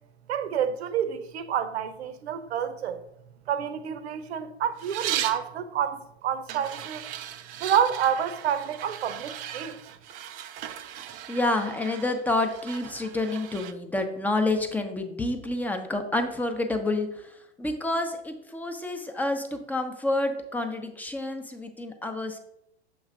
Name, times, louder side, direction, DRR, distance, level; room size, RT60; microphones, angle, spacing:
voice 1, 0.3-3.0 3.5-7.0 7.6-9.8, right 8 dB, 70° right, 0.8 m, -28 dB
sound 1, 4.8-5.5 6.5-13.7, right 11 dB, 25° right, 0.4 m, -37 dB
voice 2, 11.3-17.3 17.6-22.4, left 2 dB, 5° left, 0.7 m, -28 dB
7.1 x 3.1 x 4.9 m
hypercardioid pair, 110°, 33 cm